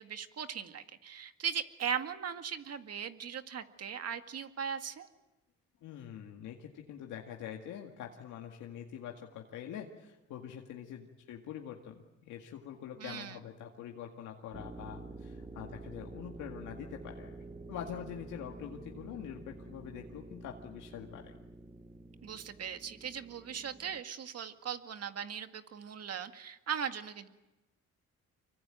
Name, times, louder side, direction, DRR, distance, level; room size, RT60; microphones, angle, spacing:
voice 1, 0.0-5.1 13.0-13.4 22.2-27.3, right 8 dB, 55° right, 8 dB, 2.0 m, -39 dB
voice 2, 5.8-17.4 17.7-21.3, left 9 dB, 90° left, 1 dB, 2.1 m, -45 dB
sound 1, 14.5-24.0, right 2 dB, 15° right, 1.4 m, -49 dB
25.5 x 24.0 x 9.1 m, 1.1 s
cardioid pair, 90°, 30 cm